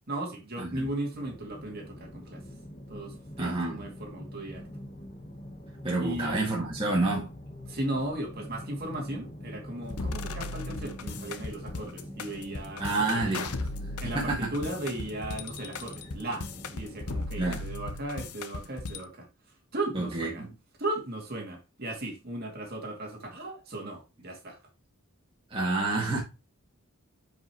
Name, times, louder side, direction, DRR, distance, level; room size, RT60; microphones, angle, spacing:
voice 1, 0.1-2.4 2.9-4.7 6.0-6.7 7.7-13.5 14.0-16.5 16.7-20.4 20.8-24.6, right 1 dB, 45° right, 2.6 m, -36 dB
sound 1, 1.1-17.2, equal, 30° left, 1.2 m, -44 dB
voice 2, 3.4-3.8 5.8-7.3 12.8-13.7 14.0-14.5 17.4-17.6 19.9-20.5 25.5-26.2, right 2 dB, 25° right, 2.0 m, -29 dB
sound 2, 9.9-19.0, left 3 dB, 90° left, 0.8 m, -36 dB
9.6 x 5.4 x 3.0 m
head